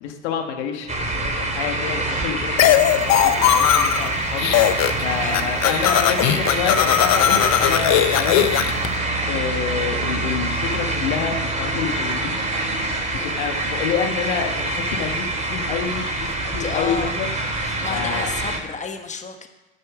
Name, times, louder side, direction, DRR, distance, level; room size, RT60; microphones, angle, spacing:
voice 1, 0.0-4.5 5.0-8.5 9.3-12.3 13.2-17.3 17.9-18.3, left 7 dB, 85° left, 4 dB, 1.4 m, -28 dB
sound 1, 0.9-18.6, right 2 dB, 25° right, 3.5 m, -25 dB
sound 2, 2.6-4.1 4.4-5.0 5.3-8.9, left 11 dB, 55° left, 0.8 m, -18 dB
voice 2, 16.4-17.1 17.6-19.5, left 5 dB, 20° left, 5 dB, 1.3 m, -31 dB
8.9 x 8.6 x 6.2 m, 1.1 s
supercardioid pair, 90°, 33 cm